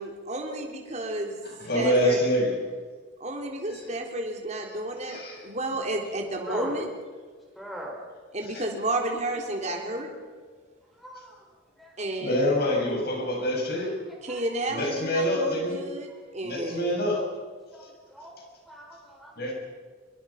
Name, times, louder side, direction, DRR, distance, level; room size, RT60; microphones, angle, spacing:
voice 1, 0.0-1.4 1.7-2.3 3.2-6.9 8.3-10.1 12.0-12.5 14.2-17.0, right 1 dB, 35° right, 1 dB, 3.5 m, -32 dB
voice 2, 1.7-2.5 5.1-5.4 8.5-8.6 12.2-13.9 14.7-15.8 16.4-17.2 19.4-19.5, equal, 55° left, 0 dB, 6.7 m, -25 dB
voice 3, 6.5-6.8 7.6-7.9 11.0-11.4 11.8-11.9 14.1-14.4 17.7-17.8 18.1-18.3 18.7-19.5, right 1 dB, ahead, 0 dB, 5.5 m, -39 dB
24.0 x 23.0 x 5.8 m, 1.5 s
head